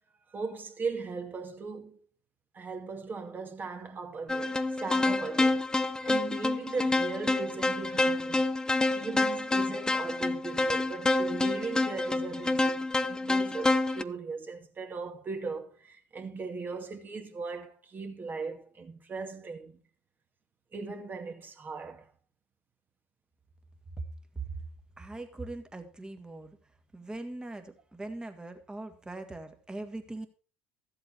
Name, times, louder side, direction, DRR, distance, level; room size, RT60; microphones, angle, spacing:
voice 1, 0.3-2.0 2.5-8.5 8.9-19.8 20.7-22.1, right 4 dB, 30° right, 2.2 m, -38 dB
sound 1, 4.3-14.0, left 2 dB, 10° left, 0.7 m, -28 dB
voice 2, 24.3-24.7 25.0-26.6 26.9-30.3, right 2 dB, 10° right, 2.0 m, -40 dB
13.5 x 7.8 x 4.6 m
hypercardioid pair, 70°, 6 cm